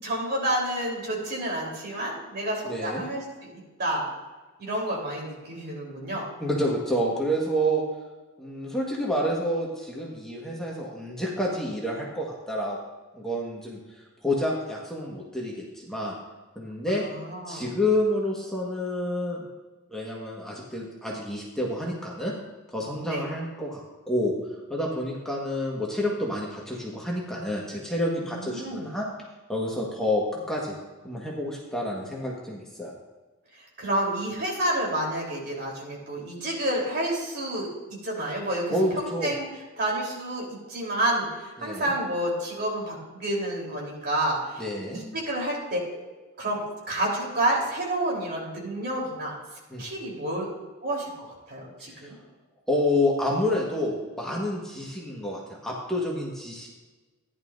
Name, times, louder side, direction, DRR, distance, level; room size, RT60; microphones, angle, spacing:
voice 1, 0.0-4.1 4.6-6.3 16.9-17.7 23.0-23.2 28.2-28.9 33.8-37.7 38.0-38.7 39.0-39.5 39.8-44.6 44.9-45.8 46.4-49.4 49.8-50.5 50.8-51.1 51.5-52.2, right 1 dB, 50° right, -3 dB, 3.7 m, -29 dB
voice 2, 2.7-3.0 6.4-7.8 8.4-12.8 13.1-13.8 14.2-16.1 16.5-17.0 17.5-19.5 19.9-22.3 22.7-24.3 24.7-29.1 29.5-30.8 31.0-32.9 38.7-39.3 41.6-41.9 44.6-45.0 49.7-49.8 51.9-52.2 52.7-56.7, left 1 dB, 5° left, -4 dB, 1.5 m, -29 dB
15.0 x 11.0 x 2.6 m, 1.2 s
head